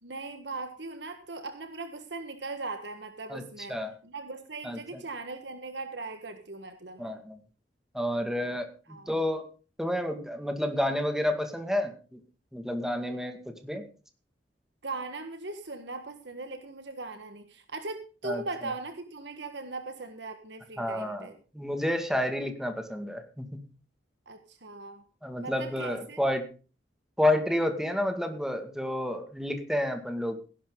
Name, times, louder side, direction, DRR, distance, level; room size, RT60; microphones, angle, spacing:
voice 1, 0.0-3.8 4.0-7.2 8.9-9.2 14.8-21.4 24.3-25.0 25.4-26.2, right 3 dB, 70° right, 7 dB, 1.6 m, -39 dB
voice 2, 4.6-5.0 7.0-7.4 7.9-9.5 9.8-12.2 12.5-13.8 18.2-18.4 20.8-21.3 21.5-23.6 25.2-26.5 27.2-30.4, left 1 dB, 5° right, 6 dB, 2.1 m, -30 dB
16.5 x 11.0 x 3.9 m, 0.36 s
head